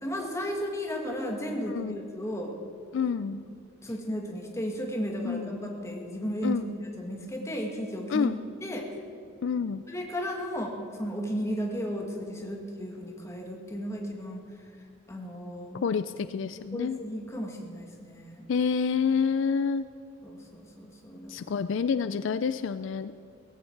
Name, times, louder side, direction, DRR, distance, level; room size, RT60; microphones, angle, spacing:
voice 1, 0.0-2.5 3.8-6.6 7.0-8.3 8.6-8.9 9.9-14.4 15.1-15.8 16.7-18.5 20.2-21.6, equal, 15° left, 1 dB, 1.9 m, -34 dB
voice 2, 2.9-3.4 5.2-5.5 6.4-6.7 8.1-8.4 9.4-9.8 15.8-17.0 18.5-19.9 21.3-23.1, left 6 dB, 60° left, 13 dB, 0.4 m, -28 dB
18.0 x 15.0 x 4.6 m, 2.5 s
head